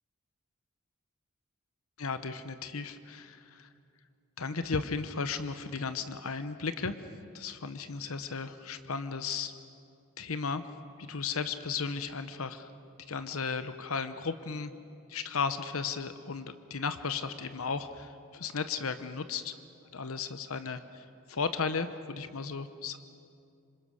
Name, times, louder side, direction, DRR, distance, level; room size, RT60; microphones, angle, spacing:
voice 1, 2.0-3.7 4.4-7.0 7.3-9.5 10.2-10.6 11.0-12.7 13.0-14.7 15.1-19.5 19.9-23.0, left 5 dB, 80° left, 10 dB, 1.0 m, -35 dB
27.0 x 26.0 x 6.4 m, 2.5 s
head